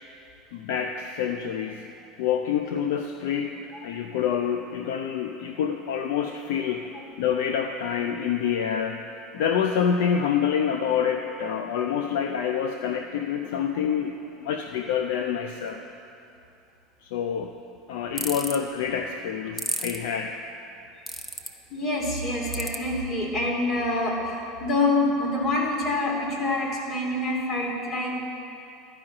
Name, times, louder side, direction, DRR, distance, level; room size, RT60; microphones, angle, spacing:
voice 1, 0.5-1.9 2.2-9.0 9.3-15.8 17.0-17.6 17.9-20.4, left 8 dB, 75° left, 6 dB, 0.5 m, -27 dB
sound 1, 18.2-18.6 19.6-20.0 21.1-21.5 22.5-22.8, equal, 5° left, 0.8 m, -30 dB
voice 2, 21.7-28.3, left 2 dB, 45° left, -2 dB, 2.7 m, -26 dB
12.0 x 5.0 x 8.7 m, 2.7 s
supercardioid pair, 100°, 0 cm